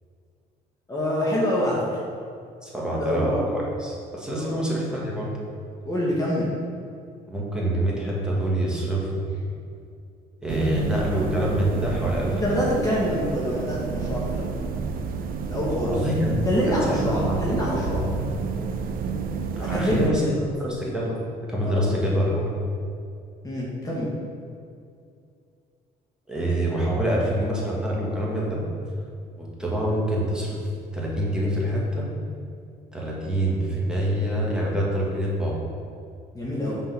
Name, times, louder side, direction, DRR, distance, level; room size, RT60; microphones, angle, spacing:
voice 1, 0.9-2.0 2.9-3.3 4.4-4.6 5.8-6.5 12.3-14.6 15.5-16.0 16.4-18.0 19.6-20.3 21.6-21.8 23.4-24.1 36.3-36.8, equal, 20° left, -6 dB, 1.1 m, -26 dB
voice 2, 2.6-5.3 7.3-9.2 10.4-12.6 15.9-16.4 16.7-17.4 17.8-18.0 19.6-20.2 20.6-21.2 21.5-22.5 26.3-28.6 29.3-30.6 30.9-32.1 32.9-35.6, right 1 dB, 5° right, -5 dB, 1.5 m, -26 dB
sound 1, 10.5-20.1, right 5 dB, 60° right, 0.5 m, -30 dB
5.7 x 3.7 x 5.8 m, 2.4 s
cardioid pair, 110°, 17 cm